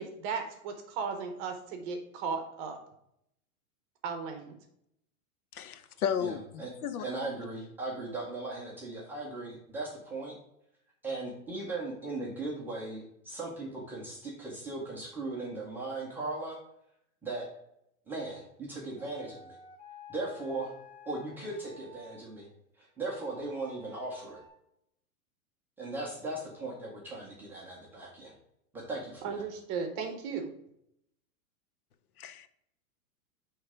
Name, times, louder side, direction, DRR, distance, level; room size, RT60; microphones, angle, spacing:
voice 1, 0.0-2.8 4.0-4.6 29.2-30.5, right 5 dB, 25° right, 5 dB, 0.9 m, -36 dB
voice 2, 5.5-7.0 32.2-32.5, left 8 dB, 80° left, 12 dB, 0.8 m, -34 dB
voice 3, 6.2-6.7 7.0-10.4 11.0-16.6 17.2-17.5 18.1-19.6 20.1-20.7 21.1-22.5 22.8-24.4 25.8-28.3 28.7-29.5, right 2 dB, 5° right, -5 dB, 0.5 m, -38 dB
sound 1, 19.0-22.2 23.0-24.5, left 3 dB, 55° left, 2.2 m, -52 dB
8.0 x 3.2 x 4.8 m, 0.77 s
hypercardioid pair, 160°, 43 cm